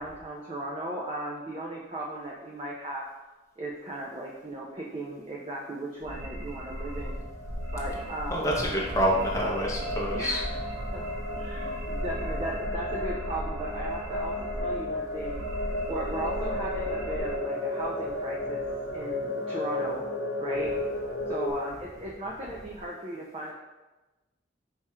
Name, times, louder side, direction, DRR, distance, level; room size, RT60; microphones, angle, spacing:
voice 1, 0.0-3.0 3.6-7.2 7.7-8.5 10.1-10.4 10.9-11.0 11.3-15.4 15.9-18.6 18.9-20.0 20.4-20.7 21.3-23.5, right 1 dB, 30° right, -3 dB, 0.4 m, -36 dB
sound 1, 6.0-17.4, equal, 90° right, 0.8 m, -37 dB
sound 2, 7.1-21.5, left 1 dB, 75° left, 0.7 m, -34 dB
voice 2, 8.3-10.4, equal, 15° left, -3 dB, 0.7 m, -27 dB
4.7 x 2.4 x 4.2 m, 1.1 s
head